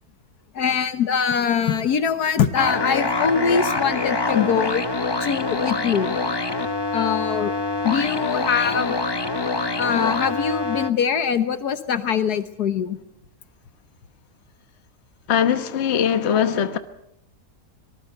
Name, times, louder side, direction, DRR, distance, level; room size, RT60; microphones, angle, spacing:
voice 1, 0.5-4.8 5.2-6.2 6.9-7.5 7.8-9.0 9.8-13.0 16.3-16.5, left 7 dB, 70° left, 1.6 m, -23 dB
sound 1, 2.5-10.9, left 3 dB, 25° left, 0.6 m, -25 dB
voice 2, 15.3-16.8, left 8 dB, 45° left, 1.2 m, -21 dB
25.0 x 19.5 x 6.6 m
omnidirectional pair, 1.8 m